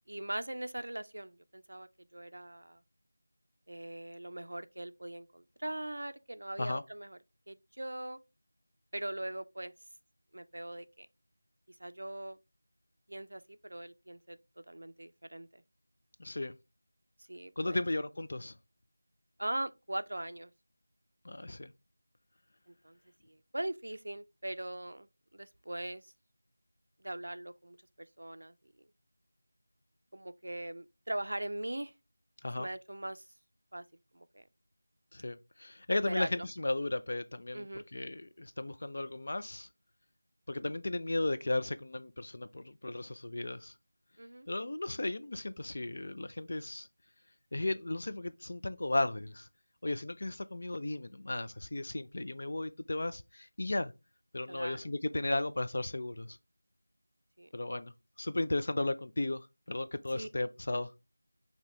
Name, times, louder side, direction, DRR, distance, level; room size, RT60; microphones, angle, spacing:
voice 1, 0.1-2.8 3.7-7.2 7.5-8.2 8.9-9.7 10.3-11.1 11.8-12.4 13.1-15.6 17.3-17.8 19.4-20.5 22.7-23.0 23.2-26.0 27.0-28.5 30.1-31.9 32.6-33.2 33.7-33.8 34.1-34.4 36.1-36.5 37.5-37.8 44.2-44.5 54.5-54.9 57.4-57.5 60.1-60.3, right 1 dB, 65° right, 0.4 m, -41 dB
voice 2, 16.2-16.6 17.6-18.6 21.2-21.7 32.4-32.7 35.1-39.7 40.5-43.7 44.5-46.9 47.5-49.5 49.8-53.9 54.3-56.4 57.5-57.9 58.2-60.9, left 2 dB, 35° left, 0.3 m, -35 dB
5.7 x 2.8 x 3.1 m
figure-of-eight pair, 180°, 0 cm